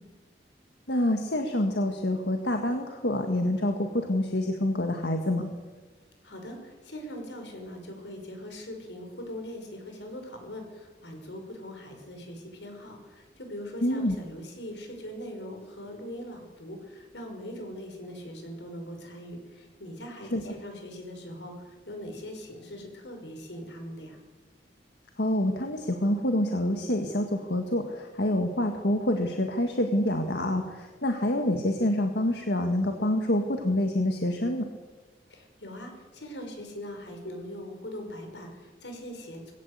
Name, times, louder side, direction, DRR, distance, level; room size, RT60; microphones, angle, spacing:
voice 1, 0.9-5.5 13.8-14.2 20.3-20.4 25.2-34.7, left 1 dB, 65° left, 4 dB, 1.8 m, -27 dB
voice 2, 6.2-24.2 35.3-39.5, equal, 85° left, 4 dB, 5.5 m, -41 dB
20.5 x 17.0 x 8.2 m, 1.3 s
head